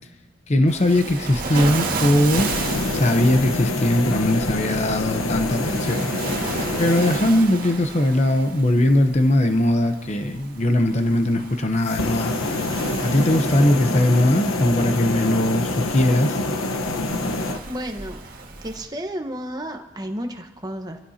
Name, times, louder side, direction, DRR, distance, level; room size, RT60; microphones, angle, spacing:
voice 1, 0.5-2.5 2.9-6.1 6.8-12.3 13.0-16.4, left 1 dB, 35° left, 6 dB, 0.9 m, -20 dB
Waves surf, 0.7-18.8, right 3 dB, 45° right, 1.9 m, -33 dB
sound 1, 2.2-7.2 11.8-17.6, left 2 dB, 85° left, 1.1 m, -26 dB
voice 2, 17.7-18.2 18.6-21.0, equal, 20° right, 4 dB, 1.1 m, -32 dB
26.0 x 15.5 x 2.8 m, 1.0 s
head